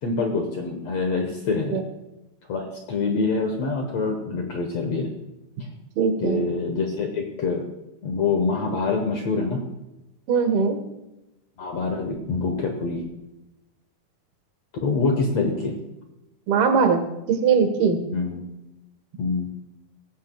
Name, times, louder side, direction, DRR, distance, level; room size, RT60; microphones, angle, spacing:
voice 1, 0.0-1.8 2.5-5.1 6.2-7.7 8.0-9.6 11.6-13.0 14.8-15.7 18.1-18.4 19.2-19.5, left 4 dB, 60° left, 3 dB, 1.8 m, -25 dB
voice 2, 6.0-6.4 10.3-10.8 16.5-17.0 17.3-18.0, right 6 dB, 75° right, 6 dB, 3.3 m, -20 dB
18.0 x 15.0 x 2.3 m, 0.95 s
omnidirectional pair, 4.4 m